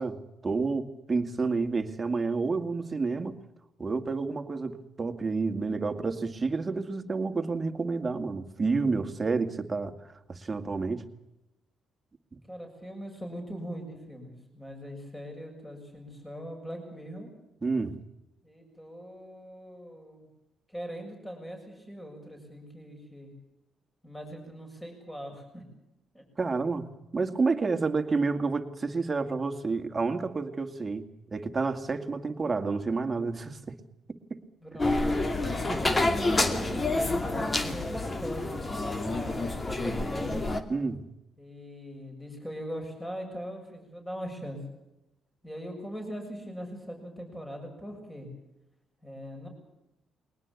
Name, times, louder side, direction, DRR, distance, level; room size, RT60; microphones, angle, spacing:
voice 1, 0.0-3.3 3.8-9.9 10.3-11.0 17.6-18.0 26.4-26.8 27.1-33.7 34.1-34.4 35.5-35.9 40.7-41.0, right 4 dB, 30° right, 6 dB, 2.2 m, -30 dB
voice 2, 12.5-17.3 18.4-20.3 20.7-23.3 24.0-25.6 26.1-26.2 34.6-35.0 35.9-40.4 41.4-44.6 45.4-48.3 49.0-49.5, equal, 10° left, 3 dB, 6.9 m, -40 dB
sound 1, 34.8-40.6, left 2 dB, 25° left, 2.5 m, -28 dB
22.0 x 19.5 x 8.4 m, 0.90 s
cardioid pair, 90°, 0 cm